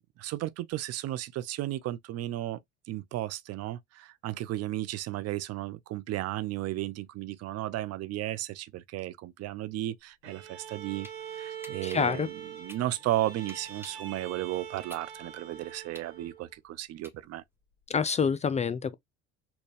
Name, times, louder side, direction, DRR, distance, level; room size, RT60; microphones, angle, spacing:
voice 1, 0.2-2.6 2.9-11.1 11.3-17.4, right 15 dB, 50° right, 0.5 m, -34 dB
Bowed string instrument, 10.2-16.5, right 8 dB, 80° right, 1.3 m, -43 dB
sound 1, 11.0-11.2 11.6-14.1 14.5-17.6, equal, 5° right, 1.3 m, -51 dB
voice 2, 11.8-12.3 17.9-18.9, left 6 dB, 20° left, 0.3 m, -27 dB
4.4 x 2.3 x 3.2 m
hypercardioid pair, 80°, 33 cm